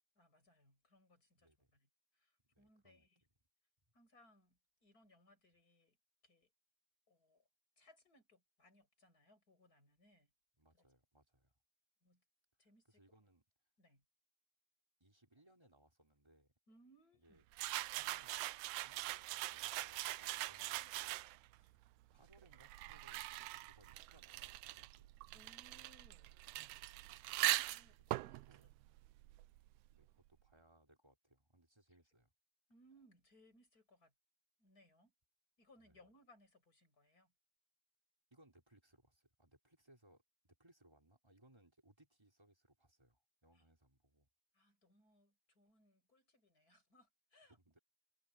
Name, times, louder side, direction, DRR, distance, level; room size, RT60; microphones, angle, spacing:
voice 1, 0.2-1.9 2.1-3.2 3.9-6.0 6.2-6.5 7.1-7.4 7.8-10.3 10.7-10.8 12.0-12.2 12.6-13.0 13.8-14.0 16.7-17.4 25.3-26.3 27.6-28.7 32.7-34.1 34.6-35.1 35.6-37.3 43.5-43.6 44.5-47.6, left 1 dB, 25° left, 7.2 m, -69 dB
voice 2, 1.4-1.7 2.5-3.1 10.6-11.5 12.8-13.4 15.0-16.5 17.2-17.4 17.9-18.5 18.7-21.2 21.5-21.8 22.1-23.3 23.6-25.1 26.9-27.2 27.9-28.7 29.9-32.3 35.8-36.0 38.3-44.3 47.5-47.8, right 1 dB, 5° right, 4.2 m, -69 dB
sound 1, 17.5-21.5 22.3-29.7, right 18 dB, 80° right, 1.8 m, -42 dB
omnidirectional pair, 4.1 m